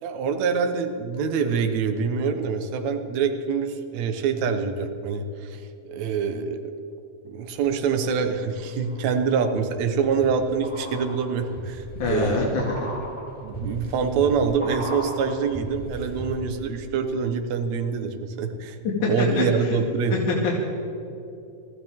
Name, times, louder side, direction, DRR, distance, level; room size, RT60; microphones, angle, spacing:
voice 1, 0.0-6.6 7.2-12.5 13.4-18.8 19.1-20.2, right 6 dB, 70° right, 6 dB, 2.3 m, -25 dB
sound 1, 7.7-8.3 8.8-16.6 16.9-17.0, right 1 dB, 5° right, 2.5 m, -36 dB
voice 2, 12.0-12.9 19.4-19.5 20.1-20.3, left 3 dB, 85° left, -5 dB, 3.7 m, -25 dB
23.0 x 15.0 x 3.6 m, 2.8 s
omnidirectional pair, 3.4 m